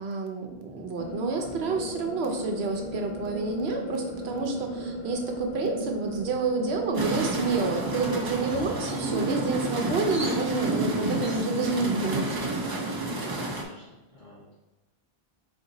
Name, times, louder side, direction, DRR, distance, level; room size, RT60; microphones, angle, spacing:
voice 1, 0.0-12.8, right 3 dB, 90° right, 3 dB, 0.9 m, -29 dB
sound 1, 1.0-13.6, equal, 55° left, 0.5 m, -39 dB
sound 2, 6.9-13.6, right 2 dB, 35° right, 0.3 m, -30 dB
voice 2, 9.3-9.6 13.2-14.5, left 2 dB, 75° left, -11 dB, 1.5 m, -50 dB
4.0 x 2.6 x 3.9 m, 1.0 s
omnidirectional pair, 1.0 m